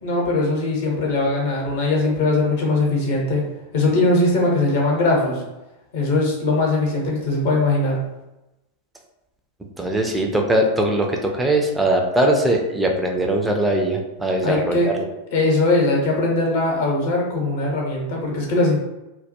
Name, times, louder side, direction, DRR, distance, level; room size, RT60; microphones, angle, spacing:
voice 1, 0.0-3.4 3.7-5.4 5.9-8.0 14.4-14.9 15.3-18.8, left 2 dB, 55° left, -2 dB, 0.7 m, -20 dB
voice 2, 9.8-15.1, right 1 dB, 10° right, 2 dB, 0.4 m, -21 dB
2.2 x 2.1 x 2.7 m, 0.98 s
figure-of-eight pair, 90°, 0 cm